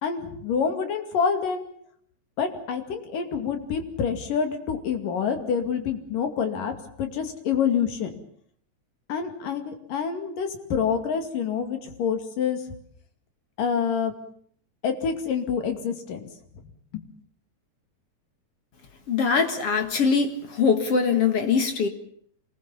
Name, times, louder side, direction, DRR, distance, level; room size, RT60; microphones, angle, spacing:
voice 1, 0.0-1.6 2.4-8.1 9.1-12.6 13.6-14.2 14.8-16.2 16.9-17.0, left 6 dB, 80° left, 6 dB, 4.1 m, -27 dB
voice 2, 19.1-21.9, left 5 dB, 50° left, 7 dB, 2.5 m, -22 dB
26.0 x 20.0 x 7.2 m, 0.63 s
omnidirectional pair, 3.8 m